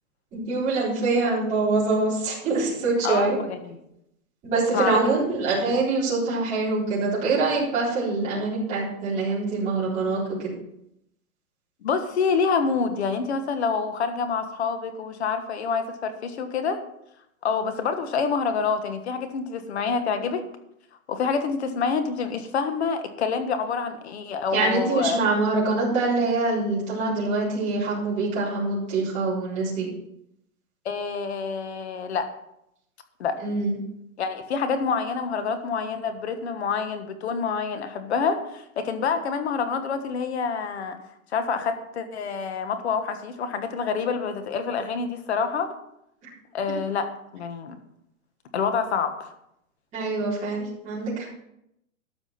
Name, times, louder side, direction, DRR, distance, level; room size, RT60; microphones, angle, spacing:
voice 1, 0.3-3.4 4.4-10.5 24.5-29.9 33.4-33.8 49.9-51.3, right 3 dB, 15° right, -9 dB, 4.3 m, -24 dB
voice 2, 3.0-3.8 4.7-5.0 11.8-16.8 17.4-20.4 21.1-25.2 30.8-32.3 33.2-33.4 34.2-41.0 41.3-45.7 46.5-47.1 47.3-47.8 48.5-49.3, left 5 dB, 50° left, 9 dB, 1.5 m, -27 dB
13.0 x 6.2 x 5.9 m, 0.80 s
hypercardioid pair, 170°, 42 cm